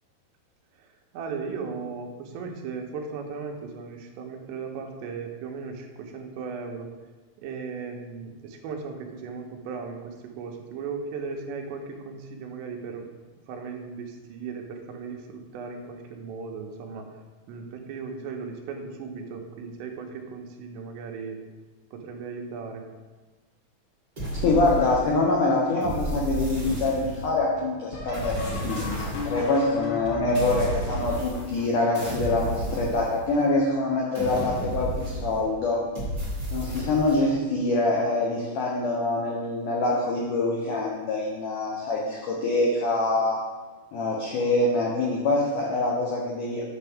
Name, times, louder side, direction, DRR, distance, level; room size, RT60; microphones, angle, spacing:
voice 1, 0.8-6.9 7.4-13.0 13.5-17.1 17.5-21.4 21.9-22.8, right 5 dB, 80° right, 3 dB, 3.0 m, -37 dB
sound 1, 24.2-25.3 25.8-27.4 28.1-29.5 30.3-31.7 31.9-33.5 34.1-35.5 35.9-37.2, right 1 dB, 20° right, 1.3 m, -32 dB
voice 2, 24.4-35.8 36.5-43.4 43.9-46.6, left 2 dB, 90° left, -2 dB, 1.8 m, -25 dB
sound 2, 26.1-33.8 34.5-35.0 35.4-36.1 37.3-37.4 38.2-38.5 40.7-40.8 43.1-43.2, left 2 dB, 75° left, 3.4 m, -36 dB
9.0 x 6.9 x 3.5 m, 1.3 s
omnidirectional pair, 5.0 m